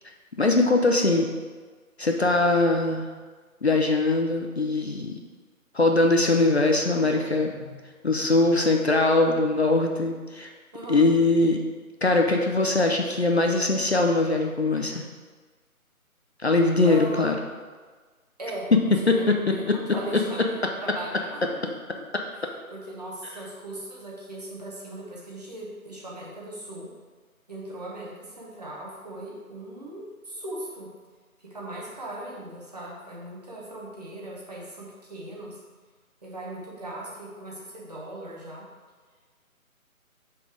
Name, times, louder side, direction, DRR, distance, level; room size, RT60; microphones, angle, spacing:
voice 1, 0.4-1.3 2.0-3.1 3.6-5.1 5.7-10.5 10.9-11.6 12.0-15.0 16.4-17.3 19.1-19.2 19.7-19.8, left 2 dB, 50° left, 3 dB, 0.5 m, -22 dB
voice 2, 10.7-11.1 16.8-17.2 18.4-21.4 22.3-26.9 27.5-30.9 31.5-35.6 36.2-38.6, right 1 dB, 30° right, -5 dB, 1.0 m, -38 dB
5.7 x 4.1 x 4.7 m, 1.4 s
figure-of-eight pair, 160°, 43 cm